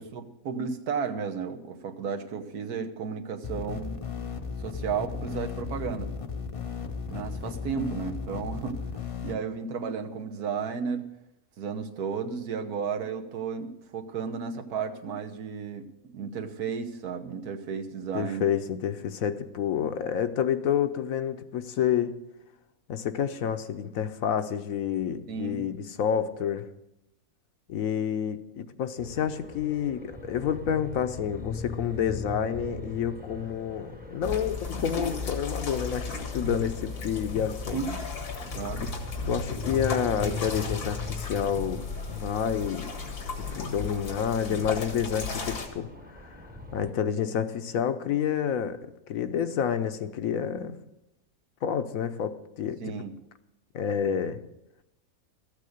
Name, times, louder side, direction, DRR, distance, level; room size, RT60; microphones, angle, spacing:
voice 1, 0.0-4.0 4.6-6.1 7.1-8.8 9.2-11.0 11.6-15.9 16.1-18.5 25.3-25.6 37.7-38.0 38.5-38.8 52.8-53.1, right 6 dB, 90° right, 5 dB, 1.6 m, -33 dB
sound 1, 3.4-9.3, left 6 dB, 30° left, 0.6 m, -35 dB
voice 2, 18.1-22.2 22.9-26.7 27.7-37.8 39.2-42.9 43.5-45.9 46.3-46.4 46.7-48.8 49.1-50.8 51.6-52.9 53.7-54.4, left 8 dB, 70° left, 10 dB, 1.1 m, -29 dB
sound 2, 29.0-46.9, left 2 dB, 10° right, 0.7 m, -41 dB
sound 3, 34.2-45.7, left 4 dB, 90° left, 2.2 m, -35 dB
13.5 x 8.4 x 6.5 m, 0.89 s
omnidirectional pair, 1.6 m